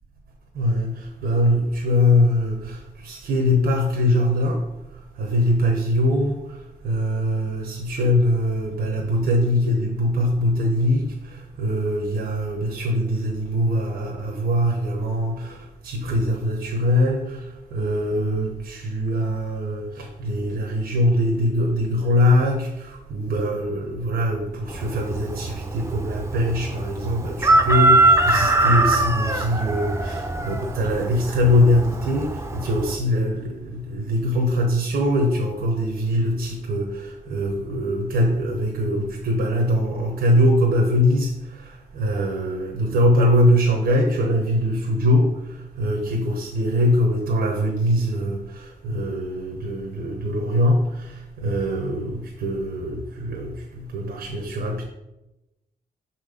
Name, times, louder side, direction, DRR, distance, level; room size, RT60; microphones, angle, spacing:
voice 1, 0.5-4.6 5.2-6.6 6.8-54.8, left 1 dB, 85° right, 2 dB, 1.1 m, -22 dB
Chicken rooster, 24.7-33.0, right 2 dB, 15° right, 0.7 m, -22 dB
5.9 x 4.3 x 5.1 m, 0.94 s
cardioid pair, 90°, 16 cm